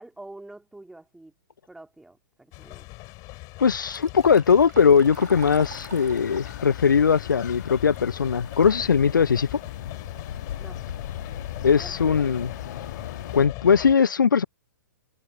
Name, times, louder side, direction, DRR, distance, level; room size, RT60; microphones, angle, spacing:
voice 1, 0.0-1.3 1.7-2.9 10.6-10.8 11.7-12.3, right 2 dB, 5° right, 2.7 m, -46 dB
sound 1, 2.5-13.9, left 24 dB, 35° left, 6.5 m, -40 dB
voice 2, 3.6-9.6 11.6-12.5 13.3-14.4, left 6 dB, 80° left, 0.4 m, -20 dB
Liquid, 3.7-8.8 9.2-9.3 10.2-10.3 10.7-11.0 11.6-11.7 12.2-12.3 12.8-13.0, right 8 dB, 65° right, 4.6 m, -46 dB
sound 2, 5.1-13.5, left 9 dB, 65° left, 2.4 m, -39 dB
figure-of-eight pair, 110°, 11 cm